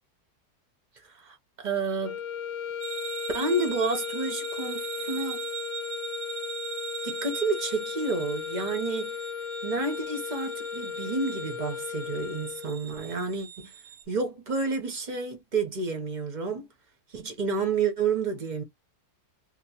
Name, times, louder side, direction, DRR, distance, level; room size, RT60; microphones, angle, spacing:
voice 1, 1.1-2.2 3.3-5.4 7.0-9.2 9.6-13.7 14.1-16.7 17.1-18.6, right 4 dB, 45° right, 0.6 m, -30 dB
sound 1, 2.0-12.9, left 7 dB, 75° left, 0.7 m, -36 dB
sound 2, 2.8-14.0, right 8 dB, 70° right, 1.0 m, -41 dB
2.9 x 2.0 x 2.7 m
omnidirectional pair, 1.7 m